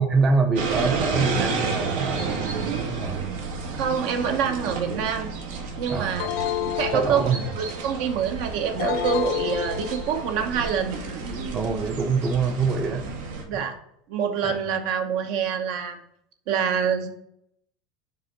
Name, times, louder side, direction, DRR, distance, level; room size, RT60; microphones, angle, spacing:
voice 1, 0.0-3.2 5.9-6.2 6.9-7.5 11.5-13.1 13.5-13.7 14.4-14.6, right 4 dB, 30° right, 5 dB, 0.7 m, -25 dB
sound 1, 0.6-13.4, right 4 dB, 85° right, 1.3 m, -31 dB
voice 2, 3.8-5.3 5.8-6.3 6.8-11.0 13.5-13.8 14.1-16.0 16.5-17.1, right 7 dB, 65° right, 5 dB, 0.9 m, -26 dB
sound 2, 6.2-7.8 8.8-10.4, left 14 dB, 70° left, 0.3 m, -30 dB
5.5 x 3.5 x 5.2 m, 0.72 s
supercardioid pair, 135°, 0 cm